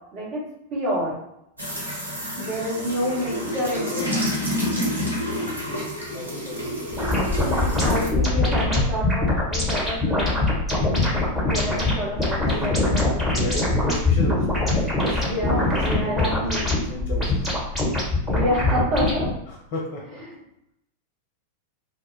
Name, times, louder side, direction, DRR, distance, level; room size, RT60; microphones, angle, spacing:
voice 1, 0.1-1.2 2.3-4.2 7.4-11.0 11.5-13.2 15.3-16.6 18.3-19.3, equal, 40° right, -6 dB, 1.0 m, -28 dB
sound 1, 1.6-8.1, equal, 85° right, 0.8 m, -29 dB
voice 2, 5.4-7.9 8.3-8.5 11.5-13.0 13.3-17.5 19.5-20.2, left 1 dB, 40° left, -1 dB, 0.6 m, -35 dB
sound 2, 6.9-19.3, left 2 dB, 5° right, 1.1 m, -23 dB
2.2 x 2.1 x 3.2 m, 0.80 s
figure-of-eight pair, 90°, 0 cm